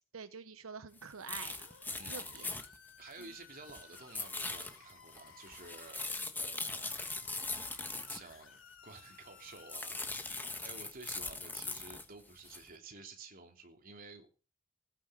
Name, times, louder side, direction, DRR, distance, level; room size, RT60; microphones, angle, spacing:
voice 1, 0.1-1.6 1.9-2.5 3.2-3.3, right 5 dB, 85° right, 11 dB, 1.0 m, -47 dB
sound 1, 1.0-1.1 1.3-3.4 3.7-8.3 9.0-9.1 9.4-12.1 12.4-12.7, left 3 dB, 10° left, 1.5 m, -41 dB
sound 2, 1.4-6.0 6.8-11.0, left 6 dB, 70° left, 3.5 m, -58 dB
voice 2, 2.0-2.4 3.0-7.2 8.1-14.3, right 3 dB, 45° right, 3 dB, 3.2 m, -52 dB
16.5 x 9.8 x 6.9 m, 0.35 s
head